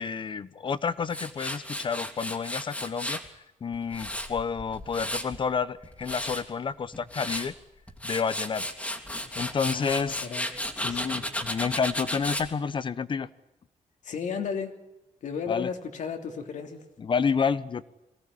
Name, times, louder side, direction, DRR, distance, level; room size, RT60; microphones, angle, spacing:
voice 1, 0.0-3.2 3.6-7.5 8.0-8.6 9.3-10.3 10.8-13.3 15.5-15.7 17.0-17.8, left 6 dB, 40° left, 16 dB, 1.0 m, -29 dB
Tools, 1.1-3.3 3.7-5.4 5.8-6.4 6.9-7.5 7.9-12.5, left 1 dB, 10° left, 2.6 m, -34 dB
voice 2, 9.6-10.5 10.7-11.2 14.0-14.7 15.2-16.8, left 6 dB, 70° left, 5 dB, 3.1 m, -34 dB
22.5 x 17.0 x 9.9 m, 0.95 s
wide cardioid pair, 155°, 13 cm